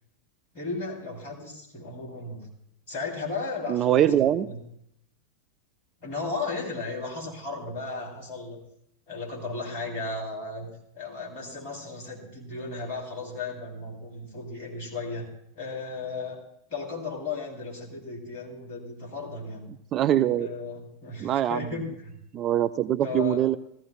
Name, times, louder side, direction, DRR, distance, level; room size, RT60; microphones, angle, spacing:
voice 1, 0.5-2.5 2.9-4.6 6.0-8.6 9.1-15.3 15.5-16.4 16.7-19.6 20.4-22.2 23.0-23.4, left 3 dB, 45° left, -1 dB, 3.2 m, -35 dB
voice 2, 3.7-4.5 19.9-20.5 21.2-21.7 22.3-23.6, right 11 dB, 30° right, 12 dB, 0.4 m, -23 dB
16.5 x 14.5 x 2.3 m, 0.77 s
figure-of-eight pair, 90°, 0 cm